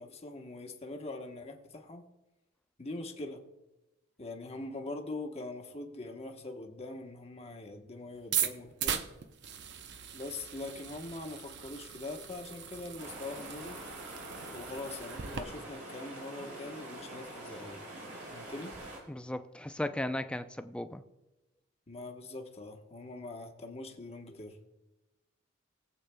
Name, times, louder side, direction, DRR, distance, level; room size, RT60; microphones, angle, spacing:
voice 1, 0.0-2.0 2.8-3.4 4.2-9.0 10.1-13.8 14.5-17.8 18.3-18.7 21.9-24.6, left 2 dB, 30° left, 3 dB, 1.1 m, -43 dB
sound 1, 8.2-15.4, right 9 dB, 55° right, 0.7 m, -38 dB
sound 2, 13.0-19.0, right 1 dB, 80° right, 4.0 m, -45 dB
voice 2, 19.1-21.0, left 1 dB, 5° left, 9 dB, 0.4 m, -36 dB
21.0 x 8.2 x 2.2 m, 1.0 s
head